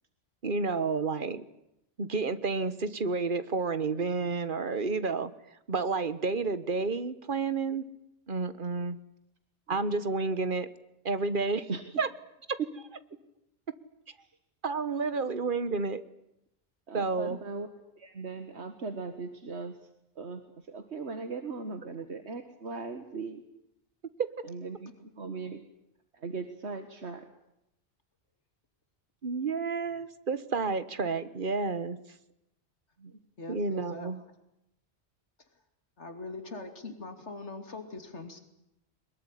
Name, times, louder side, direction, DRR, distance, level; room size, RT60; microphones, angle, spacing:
voice 1, 0.4-1.4 2.0-5.3 5.7-7.9 8.3-9.0 9.7-10.7 11.0-11.7 12.0-12.1 12.5-12.6 14.6-16.0 16.9-17.4 29.2-32.0 33.5-34.2, right 4 dB, 50° right, 14 dB, 1.5 m, -30 dB
voice 2, 16.9-17.7 18.0-19.8 20.2-20.4 20.7-23.4 24.5-25.6 26.1-27.2 33.0-33.1, right 4 dB, 75° right, 8 dB, 2.0 m, -38 dB
voice 3, 33.4-34.1 36.0-38.4, left 3 dB, 85° left, 7 dB, 3.2 m, -41 dB
23.0 x 21.5 x 10.0 m, 0.83 s
omnidirectional pair, 1.2 m